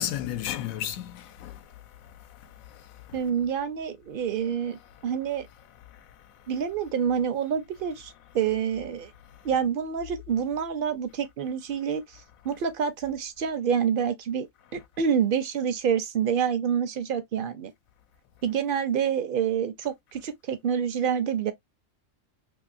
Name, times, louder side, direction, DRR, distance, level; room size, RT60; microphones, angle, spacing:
voice 1, 0.0-3.3 4.7-5.2 5.5-6.7 8.1-8.5 9.2-9.6 11.4-11.5 12.4-12.6, left 11 dB, 85° left, 1.0 m, -38 dB
voice 2, 3.1-5.5 6.5-9.1 9.4-14.5 14.7-17.7 18.4-21.5, right 7 dB, 65° right, 0.5 m, -27 dB
2.9 x 2.7 x 2.5 m
omnidirectional pair, 1.4 m